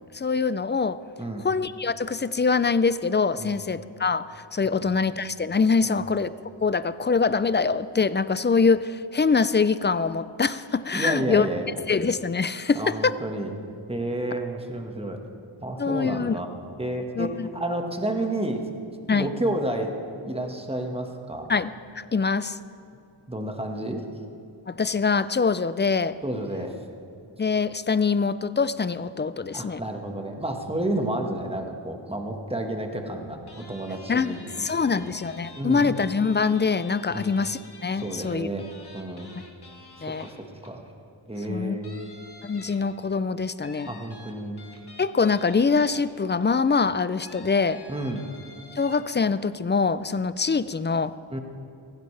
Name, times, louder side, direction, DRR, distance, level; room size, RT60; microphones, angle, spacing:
voice 1, 0.1-1.0 1.4-6.3 6.6-11.5 11.9-13.1 15.8-16.4 17.2-17.5 19.1-19.3 21.5-22.6 24.7-26.2 27.4-29.8 34.1-38.5 40.0-40.3 41.5-41.8 42.4-43.9 45.0-47.8 48.8-51.1, left 5 dB, 25° left, 15 dB, 0.3 m, -24 dB
voice 2, 10.9-11.8 12.7-13.5 13.9-15.2 15.6-16.5 16.8-18.7 19.1-19.9 20.2-21.5 23.3-24.0 26.2-26.8 29.5-34.6 35.0-35.2 35.5-35.9 37.1-37.3 37.9-38.7 38.9-39.3 40.0-40.4 40.6-40.8 41.3-42.1 43.8-44.6 47.9-48.3 51.3-51.4, right 1 dB, 10° right, 3 dB, 1.5 m, -31 dB
sound 1, 33.5-40.9 41.3-41.5 41.8-43.1 43.6-46.4 47.2-49.0, left 2 dB, 50° left, 2.0 m, -48 dB
16.0 x 16.0 x 3.3 m, 2.7 s
wide cardioid pair, 60°, 50 cm